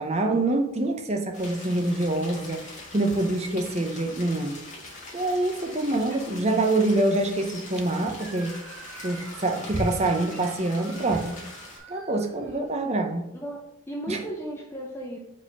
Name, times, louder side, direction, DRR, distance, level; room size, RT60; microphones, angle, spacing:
voice 1, 0.0-4.6 5.1-8.5 9.0-11.4 11.9-13.2 14.1-14.2, right 2 dB, 30° right, 4 dB, 0.7 m, -25 dB
sound 1, 1.3-11.8, left 2 dB, 35° left, 1.7 m, -43 dB
Screaming, 8.2-13.0, right 4 dB, 85° right, 1.2 m, -47 dB
voice 2, 13.9-15.2, right 1 dB, 10° left, -2 dB, 0.6 m, -35 dB
4.9 x 4.1 x 5.4 m, 0.83 s
head